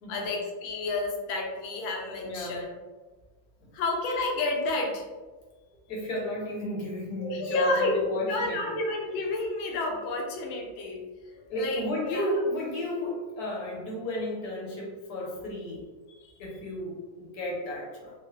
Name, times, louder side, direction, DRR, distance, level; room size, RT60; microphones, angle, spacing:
voice 1, 0.1-2.7 3.7-5.0 7.2-11.0 11.5-12.2, left 2 dB, 75° left, 1 dB, 1.4 m, -30 dB
voice 2, 2.2-2.6 5.9-8.7 11.5-15.8 16.4-18.1, left 1 dB, 55° left, -3 dB, 1.2 m, -33 dB
4.6 x 2.1 x 3.0 m, 1.3 s
omnidirectional pair, 2.3 m